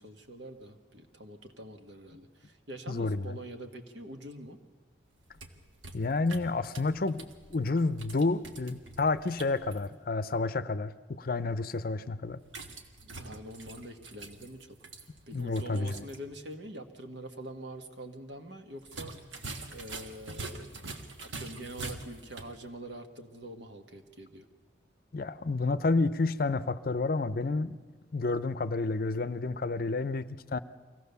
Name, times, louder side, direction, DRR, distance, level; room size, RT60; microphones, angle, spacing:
voice 1, 0.0-4.6 13.0-14.8 15.3-19.2 19.7-20.7 21.2-24.5, right 1 dB, 70° right, 1.6 m, -45 dB
voice 2, 2.9-3.3 5.9-12.4 15.3-16.1 25.1-27.8 28.1-30.6, left 3 dB, 50° left, 0.6 m, -30 dB
sound 1, 5.1-9.9 12.5-16.2 16.5-16.6 18.8-22.6, right 3 dB, 85° right, 1.6 m, -45 dB
24.0 x 17.0 x 6.9 m
head